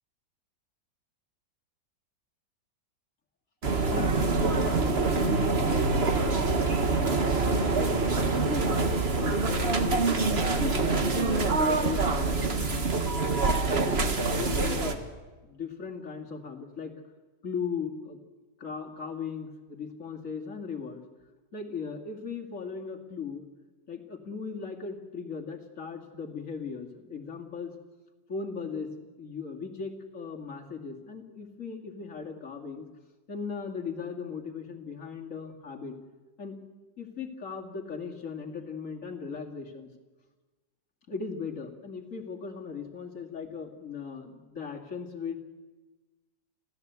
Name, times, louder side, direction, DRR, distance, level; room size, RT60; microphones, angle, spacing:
sound 1, 3.6-14.9, right 3 dB, 35° right, 1.7 m, -25 dB
voice 1, 3.9-6.0 6.3-6.7 7.0-12.9 13.8-15.0 15.4-16.9 17.4-18.2 18.6-21.0 21.5-23.5 23.9-27.7 28.3-32.9 33.3-35.9 36.4-36.6 37.0-39.9 41.1-45.3, left 5 dB, 45° left, 1 dB, 2.8 m, -38 dB
26.5 x 16.0 x 8.2 m, 1.2 s
omnidirectional pair, 1.9 m